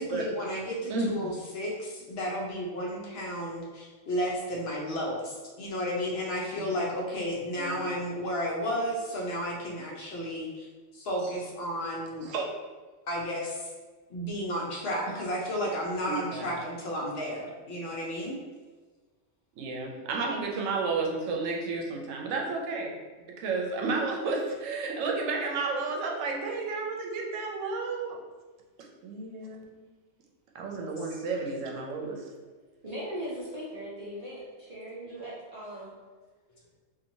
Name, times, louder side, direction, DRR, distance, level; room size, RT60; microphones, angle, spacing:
voice 1, 0.0-10.7 10.9-12.3 13.1-13.7 14.1-18.4, equal, 65° left, -3 dB, 0.7 m, -33 dB
voice 2, 0.9-1.3 6.6-6.7 7.5-7.8 12.3-12.4 16.1-16.4 19.6-22.9 23.4-28.2 29.0-29.8 30.5-32.2, right 3 dB, 85° right, 0 dB, 0.9 m, -32 dB
voice 3, 32.8-35.9, equal, 50° right, -7 dB, 0.5 m, -39 dB
2.9 x 2.5 x 2.6 m, 1.4 s
omnidirectional pair, 1.3 m